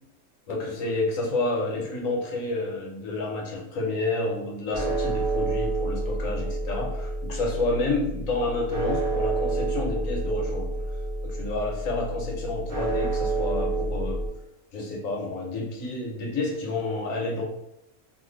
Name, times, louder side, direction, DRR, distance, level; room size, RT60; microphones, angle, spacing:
voice 1, 0.5-10.7 11.2-14.2 14.7-17.4, left 2 dB, 70° left, -1 dB, 1.1 m, -29 dB
sound 1, 4.7-14.3, right 2 dB, 50° right, 0.6 m, -29 dB
2.6 x 2.4 x 3.8 m, 0.83 s
omnidirectional pair, 1.5 m